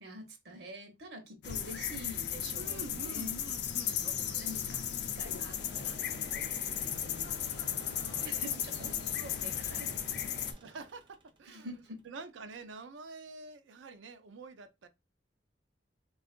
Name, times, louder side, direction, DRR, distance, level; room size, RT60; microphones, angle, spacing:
voice 1, 0.0-3.4 3.8-4.1 4.3-6.5 6.7-7.9 8.2-8.9 9.4-10.3 11.5-12.0, equal, 60° right, 0.8 m, -47 dB
sound 1, 1.4-10.5, left 9 dB, 60° left, 0.4 m, -35 dB
voice 2, 2.5-4.5 7.5-9.4 9.7-9.9 10.6-11.7 12.0-14.9, right 4 dB, 85° right, 0.4 m, -48 dB
sound 2, 5.6-12.5, right 1 dB, 25° right, 0.4 m, -52 dB
3.6 x 2.4 x 2.3 m
head